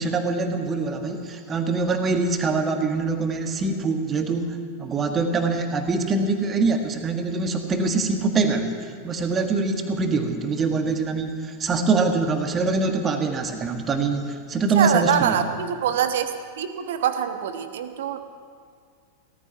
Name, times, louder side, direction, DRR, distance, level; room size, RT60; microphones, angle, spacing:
voice 1, 0.0-15.5, right 3 dB, 20° right, 5 dB, 1.5 m, -24 dB
voice 2, 14.7-16.3 16.6-18.2, right 9 dB, 55° right, 8 dB, 1.1 m, -24 dB
17.0 x 14.5 x 5.8 m, 2.2 s
figure-of-eight pair, 90°, 0 cm